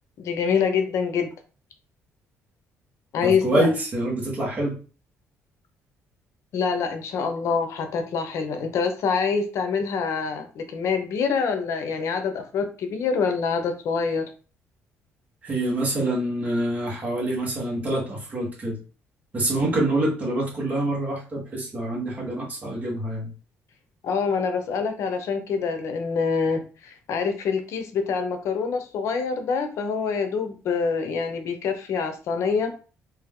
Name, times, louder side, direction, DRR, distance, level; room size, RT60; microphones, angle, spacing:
voice 1, 0.2-1.3 3.1-3.7 6.5-14.2 24.0-32.7, left 5 dB, 65° left, 7 dB, 0.7 m, -25 dB
voice 2, 3.2-4.8 15.4-18.8 19.3-23.3, right 1 dB, 30° right, -3 dB, 1.5 m, -26 dB
3.5 x 3.0 x 3.6 m, 0.36 s
cardioid pair, 140°, 5 cm